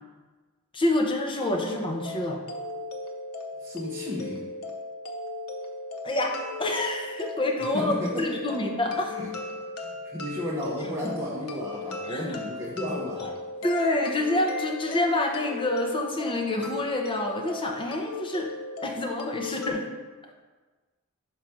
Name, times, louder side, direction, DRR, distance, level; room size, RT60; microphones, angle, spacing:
voice 1, 0.7-2.4 6.0-9.2 12.1-12.4 13.2-13.3 13.6-18.5 18.8-19.9, left 1 dB, 25° left, 1 dB, 0.7 m, -27 dB
sound 1, 1.5-19.7, left 3 dB, 85° left, 0.8 m, -37 dB
voice 2, 3.6-4.4 7.7-8.6 9.1-9.3 9.8-13.3, left 1 dB, 15° right, -7 dB, 0.9 m, -33 dB
5.0 x 4.7 x 5.9 m, 1.3 s
head